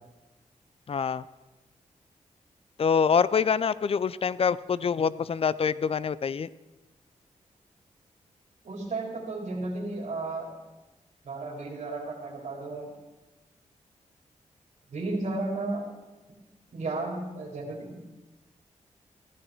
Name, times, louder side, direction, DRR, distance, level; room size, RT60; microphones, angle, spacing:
voice 1, 0.9-1.2 2.8-6.5, left 6 dB, 50° left, 18 dB, 0.4 m, -25 dB
voice 2, 8.6-10.5 11.2-12.9 14.9-15.9 16.7-18.0, right 2 dB, 70° right, -2 dB, 2.7 m, -33 dB
15.0 x 10.0 x 4.5 m, 1.1 s
cardioid pair, 60°, 13 cm